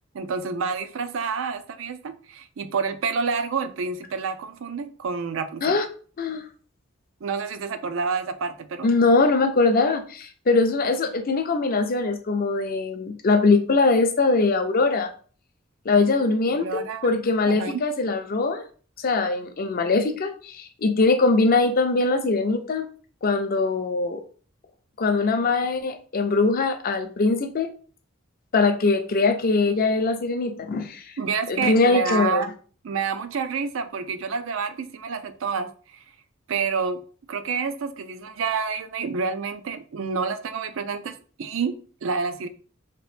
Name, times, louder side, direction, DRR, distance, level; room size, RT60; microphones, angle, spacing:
voice 1, 0.1-5.8 7.2-8.9 16.5-17.1 17.5-17.8 31.2-32.5 32.8-36.0 36.5-37.0 37.3-42.5, right 5 dB, 75° right, 10 dB, 0.4 m, -28 dB
voice 2, 8.8-15.1 15.9-18.6 19.0-22.8 23.2-24.2 25.0-27.7 28.5-31.0 31.5-32.4, left 3 dB, 45° left, 7 dB, 0.5 m, -22 dB
2.9 x 2.9 x 3.2 m, 0.41 s
head